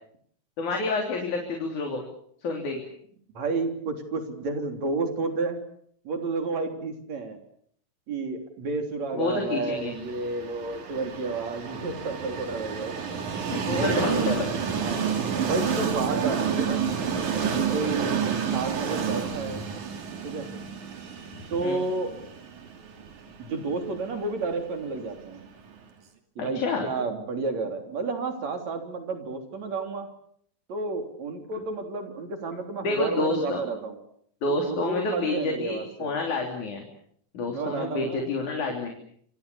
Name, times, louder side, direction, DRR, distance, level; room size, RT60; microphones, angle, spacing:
voice 1, 0.6-2.0 2.4-2.8 9.1-9.9 13.5-14.5 18.5-18.6 21.6-21.8 26.4-26.9 32.8-33.6 34.4-36.9 37.3-38.9, left 3 dB, 85° left, 2 dB, 4.9 m, -28 dB
voice 2, 3.3-5.6 6.0-7.4 8.1-13.0 13.7-14.3 14.8-16.8 17.4-18.1 18.5-19.6 20.2-20.5 21.5-22.1 23.4-25.4 26.4-30.1 30.7-34.0 34.5-36.1 37.5-38.3, right 3 dB, 65° right, 5 dB, 4.7 m, -31 dB
Train, 9.9-25.7, right 7 dB, 85° right, 4.1 m, -30 dB
28.0 x 24.5 x 7.1 m, 0.66 s
omnidirectional pair, 3.4 m